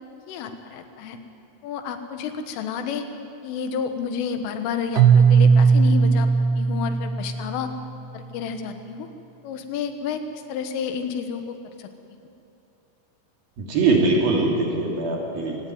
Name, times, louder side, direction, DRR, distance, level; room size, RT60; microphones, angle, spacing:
voice 1, 0.3-1.2 1.6-3.1 3.4-6.3 6.6-7.7 8.1-9.1 9.4-11.9, left 6 dB, 90° left, 7 dB, 4.0 m, -30 dB
Keyboard (musical), 5.0-7.9, right 5 dB, 70° right, 2.9 m, -18 dB
voice 2, 13.6-15.6, right 3 dB, 55° right, -1 dB, 4.4 m, -22 dB
26.0 x 17.0 x 9.4 m, 2.7 s
omnidirectional pair, 5.6 m